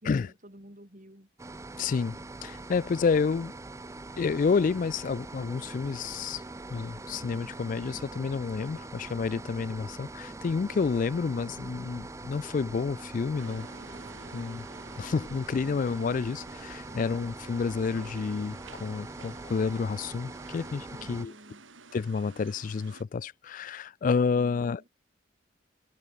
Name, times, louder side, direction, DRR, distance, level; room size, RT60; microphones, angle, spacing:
voice 1, 0.0-1.3 16.9-17.1 20.9-21.7 24.3-24.9, equal, 40° right, 5.2 m, -51 dB
sound 1, 1.4-21.2, right 2 dB, 15° right, 0.5 m, -43 dB
voice 2, 1.8-3.5 4.2-6.4 6.7-13.7 14.3-14.6 15.0-21.3 21.9-24.8, left 5 dB, 45° left, 0.3 m, -29 dB
sound 2, 13.4-23.0, right 4 dB, 90° right, 3.9 m, -51 dB
head